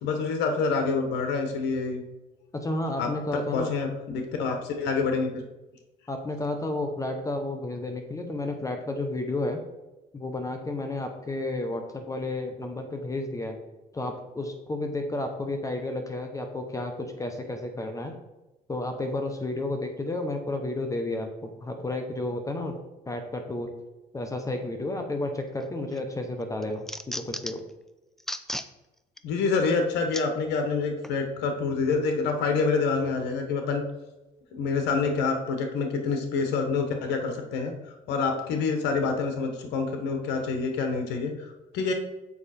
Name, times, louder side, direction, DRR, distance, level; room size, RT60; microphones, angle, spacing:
voice 1, 0.0-2.0 3.0-3.1 3.5-5.4 29.2-33.8 34.5-41.9, left 4 dB, 85° left, 5 dB, 1.1 m, -27 dB
voice 2, 2.5-3.7 6.1-9.6 10.1-13.6 13.9-18.1 18.7-22.8 23.0-23.7 24.1-27.6, left 2 dB, 20° left, 5 dB, 0.9 m, -32 dB
sound 1, 25.6-26.0 26.4-27.7 28.2-28.7 29.2-29.3 30.1-30.3 31.0-31.2, left 1 dB, ahead, 0.4 m, -35 dB
7.2 x 4.9 x 4.2 m, 1.0 s
cardioid pair, 110°, 17 cm